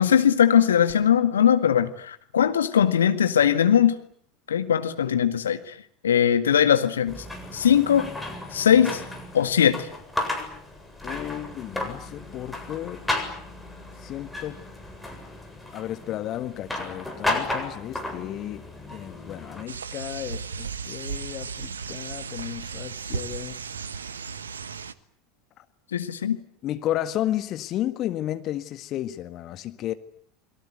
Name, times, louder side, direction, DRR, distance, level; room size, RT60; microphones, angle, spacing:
voice 1, 0.0-4.0 4.5-5.8 6.0-7.2 7.5-8.1 8.5-9.0 9.3-9.9 25.9-26.4, left 9 dB, 75° left, 9 dB, 2.0 m, -20 dB
sound 1, 7.1-19.6, left 2 dB, 5° left, 7.5 m, -34 dB
voice 2, 11.0-13.0 14.0-14.6 15.7-23.6 24.0-24.1 25.6-25.7 26.6-29.9, left 13 dB, 40° left, 10 dB, 1.7 m, -33 dB
sound 2, 19.7-24.9, right 5 dB, 75° right, 1.3 m, -35 dB
29.5 x 23.0 x 8.2 m, 0.63 s
figure-of-eight pair, 75°, 0 cm